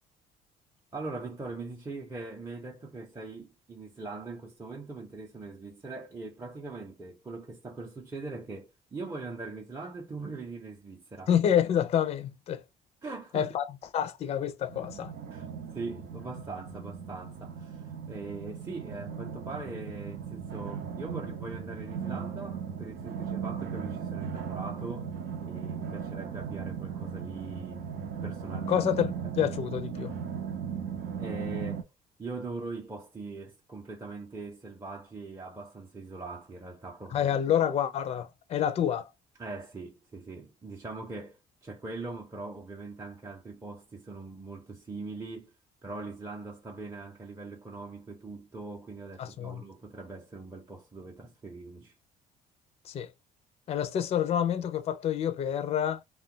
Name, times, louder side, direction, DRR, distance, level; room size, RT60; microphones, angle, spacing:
voice 1, 0.9-11.3 13.0-13.5 15.3-15.5 15.7-25.1 25.4-28.8 29.2-29.3 31.2-31.9 32.2-37.3 39.4-45.5 45.8-51.9, right 3 dB, 15° right, 0.6 m, -41 dB
voice 2, 11.3-12.6 13.3-15.1 28.7-30.2 37.1-39.1 49.2-49.6 52.8-53.1 53.7-56.0, left 9 dB, 35° left, 0.4 m, -28 dB
sound 1, 14.7-31.8, right 7 dB, 75° right, 0.8 m, -37 dB
2.2 x 2.1 x 3.7 m
cardioid pair, 110°, 17 cm